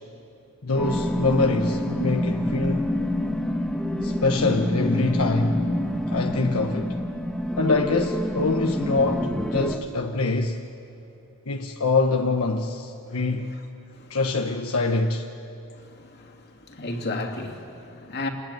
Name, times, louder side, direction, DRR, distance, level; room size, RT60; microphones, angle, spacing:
voice 1, 0.6-2.9 4.0-5.7 6.1-7.0 7.6-10.6 11.5-13.6 14.1-15.3, left 3 dB, 80° left, 1.2 m, -24 dB
sound 1, 0.8-9.8, left 1 dB, 5° left, 1.3 m, -27 dB
voice 2, 16.7-18.3, left 2 dB, 50° left, 2.7 m, -32 dB
28.0 x 20.5 x 9.3 m
head